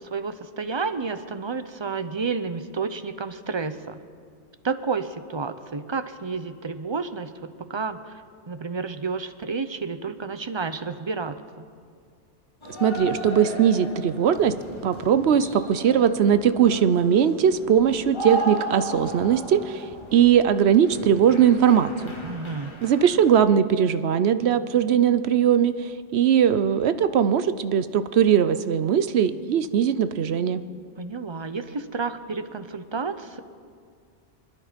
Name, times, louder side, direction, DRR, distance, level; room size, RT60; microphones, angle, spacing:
voice 1, 0.0-4.0 4.6-11.7 22.2-22.7 31.0-33.4, right 4 dB, 35° right, 11 dB, 0.5 m, -31 dB
sound 1, 12.6-23.4, right 1 dB, 25° left, 1.5 m, -36 dB
voice 2, 12.8-14.5 14.8-19.9 20.1-22.1 22.8-30.6, right 8 dB, 65° right, 12 dB, 0.9 m, -20 dB
26.0 x 10.5 x 5.1 m, 2.1 s
omnidirectional pair, 1.2 m